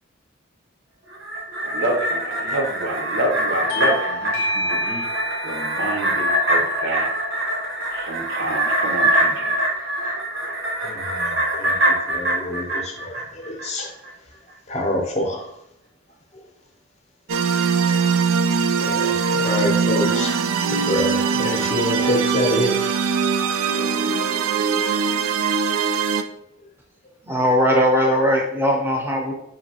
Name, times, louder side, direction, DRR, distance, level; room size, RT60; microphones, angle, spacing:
sound 1, 1.1-13.7 14.0-14.1, right 1 dB, 75° right, 1.0 m, -24 dB
voice 1, 1.6-5.1 5.4-7.1 7.9-9.6, right 1 dB, 60° right, 2 dB, 0.7 m, -28 dB
Bell / Doorbell, 3.7-8.8, left 1 dB, 85° left, 0.6 m, -31 dB
voice 2, 10.8-11.7 12.1-13.9 14.2-14.3 14.7-15.6 16.3-16.5 18.7-20.5 20.8-22.8 24.9-25.0, left 1 dB, 35° left, 1 dB, 0.6 m, -26 dB
sound 2, 17.3-26.2, right 5 dB, 90° right, 0.3 m, -21 dB
voice 3, 27.2-29.3, equal, 10° right, 0 dB, 0.6 m, -19 dB
5.2 x 2.7 x 2.8 m, 0.77 s
head